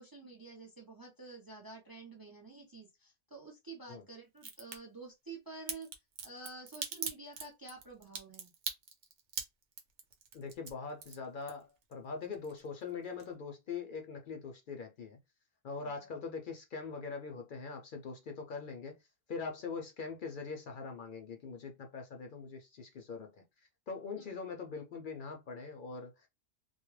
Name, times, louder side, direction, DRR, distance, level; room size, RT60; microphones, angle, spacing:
voice 1, 0.0-5.9 6.2-8.5 15.8-15.9 24.1-24.4, right 3 dB, 35° right, 0.4 m, -49 dB
Crack, 4.4-4.8 5.7-11.9 12.2-12.9 13.2-13.3, right 6 dB, 80° right, 1.0 m, -41 dB
voice 2, 10.3-15.2 15.6-23.4 23.9-26.3, left 5 dB, 60° left, 0.6 m, -42 dB
2.3 x 2.1 x 3.1 m
omnidirectional pair, 1.2 m